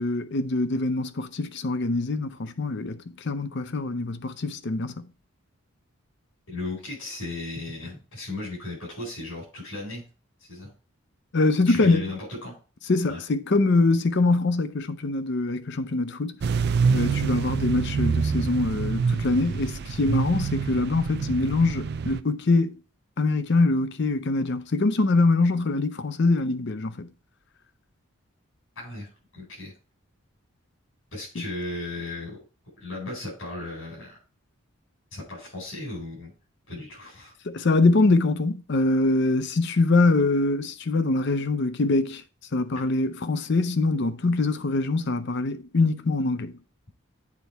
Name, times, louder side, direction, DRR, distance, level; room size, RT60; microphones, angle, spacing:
voice 1, 0.0-5.1 11.3-12.1 12.9-16.4 16.9-22.8 23.2-27.1 31.4-31.5 37.4-42.2 42.5-46.6, left 3 dB, 55° left, 0.6 m, -24 dB
voice 2, 6.5-10.0 10.5-10.7 11.7-12.5 13.1-13.2 28.7-29.7 31.1-32.4 32.8-34.1 35.1-36.3 36.7-37.3, left 2 dB, 75° left, 4.9 m, -36 dB
sound 1, 16.4-22.2, right 5 dB, 50° right, 0.4 m, -26 dB
8.4 x 4.2 x 4.5 m
head